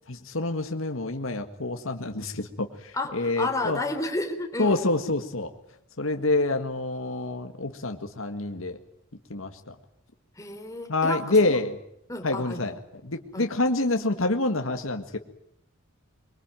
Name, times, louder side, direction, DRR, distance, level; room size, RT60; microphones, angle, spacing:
voice 1, 0.1-3.8 4.6-5.5 6.0-8.8 9.3-9.8 10.9-11.8 12.2-12.7 13.0-15.2, left 2 dB, 75° left, 6 dB, 1.8 m, -27 dB
voice 2, 2.9-5.0 10.4-11.6 12.1-12.7 13.3-13.5, left 2 dB, 15° left, 4 dB, 3.7 m, -32 dB
24.0 x 23.5 x 9.1 m, 0.73 s
head